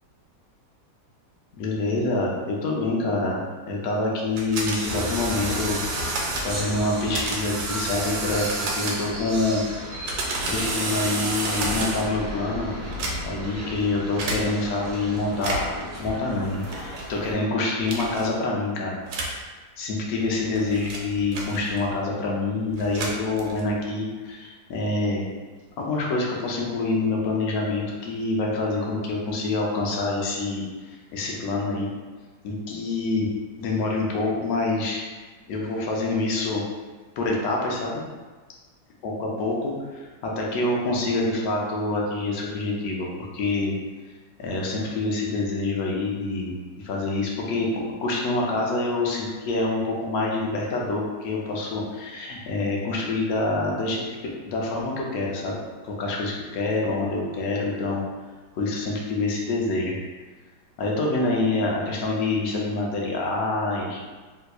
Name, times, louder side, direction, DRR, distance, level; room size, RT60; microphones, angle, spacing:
voice 1, 1.5-5.8 6.4-9.6 10.5-12.7 13.2-15.7 16.0-19.0 19.8-25.3 25.8-31.9 32.4-33.3 33.6-35.0 35.5-36.6 37.2-38.0 39.0-43.1 43.3-43.7 44.4-47.7 48.0-55.6 55.8-58.0 58.5-60.0 60.8-64.0, left 2 dB, 65° left, -2 dB, 1.0 m, -26 dB
sound 1, 4.4-6.6 7.1-9.3 9.8-12.2 12.8-13.5 14.2-14.4 15.3-15.8 16.7-17.0 17.9-18.3 19.1-19.4 20.2-22.0 22.7-23.8, right 2 dB, 90° right, 1.3 m, -30 dB
sound 2, 4.8-17.3, equal, 65° right, 0.5 m, -35 dB
3.3 x 2.9 x 2.3 m, 1.3 s
omnidirectional pair, 1.9 m